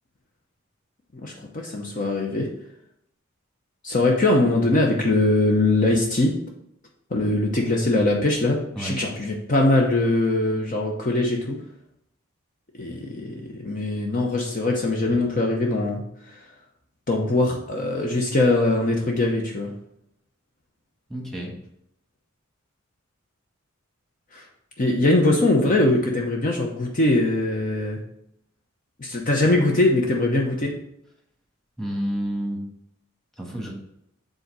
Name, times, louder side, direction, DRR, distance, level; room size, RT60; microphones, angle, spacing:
voice 1, 1.2-2.5 3.8-6.3 7.1-11.6 12.8-16.0 17.1-19.7 24.3-24.4 24.8-28.0 29.0-30.7, left 2 dB, 40° left, 0 dB, 0.8 m, -22 dB
voice 2, 21.1-21.5 31.8-32.6 33.4-33.7, right 1 dB, ahead, -1 dB, 1.6 m, -29 dB
7.7 x 3.9 x 4.7 m, 0.76 s
head